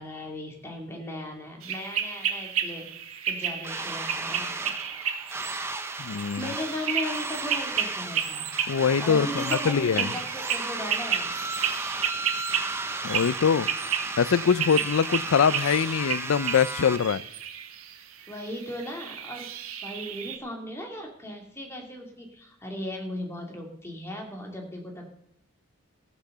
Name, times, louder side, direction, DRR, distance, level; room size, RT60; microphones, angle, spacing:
voice 1, 0.0-2.9 3.3-4.7 6.4-8.6 9.0-11.3 18.3-19.5 19.8-25.1, left 1 dB, 10° left, 0 dB, 2.7 m, -37 dB
sound 1, 1.6-20.4, right 8 dB, 90° right, 1.4 m, -32 dB
sound 2, 3.6-17.0, right 3 dB, 10° right, 0.7 m, -34 dB
voice 2, 6.0-6.5 8.7-10.1 13.0-13.7 14.2-17.2, left 6 dB, 80° left, 19 dB, 0.4 m, -23 dB
14.5 x 8.1 x 6.7 m, 0.77 s
head